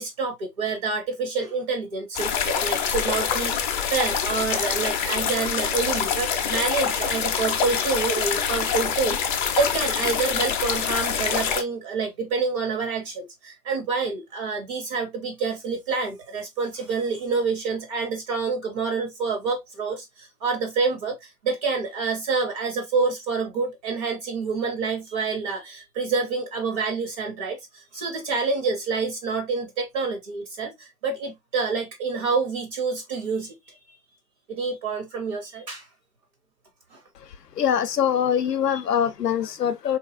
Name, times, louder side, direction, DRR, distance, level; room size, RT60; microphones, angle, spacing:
voice 1, 0.0-33.8 34.5-35.9 36.9-37.0, right 4 dB, 25° right, 0.4 m, -27 dB
sound 1, 2.1-11.6, left 7 dB, 30° left, 0.5 m, -25 dB
voice 2, 37.6-40.0, left 8 dB, 80° left, 0.7 m, -23 dB
3.6 x 2.9 x 2.2 m
figure-of-eight pair, 115°, 47 cm